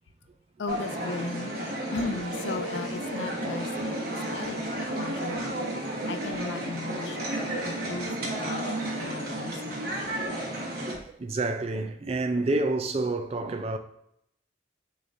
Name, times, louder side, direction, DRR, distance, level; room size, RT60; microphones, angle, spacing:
voice 1, 0.6-1.5 1.9-5.5 6.1-9.9, left 3 dB, 65° left, 0.4 m, -37 dB
sound 1, 0.7-11.0, right 1 dB, 50° right, 1.1 m, -32 dB
voice 2, 10.9-13.8, right 2 dB, 30° right, 0.4 m, -29 dB
6.5 x 3.1 x 2.6 m
head